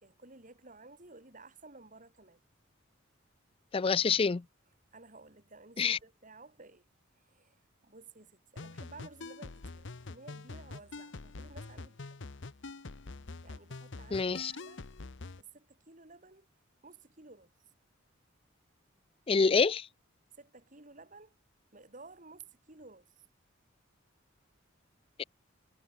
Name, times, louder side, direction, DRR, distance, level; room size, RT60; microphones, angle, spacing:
voice 1, 0.0-2.4 4.9-6.8 7.2-12.2 13.4-14.8 15.4-16.5 16.8-17.5 20.4-21.4 21.7-23.1, right 3 dB, 40° right, 3.7 m, -54 dB
voice 2, 3.7-4.4 5.8-6.0 14.1-14.5 19.3-19.9 25.2-25.3, left 5 dB, 25° left, 0.4 m, -27 dB
sound 1, 8.6-15.4, left 3 dB, 65° left, 0.9 m, -45 dB
head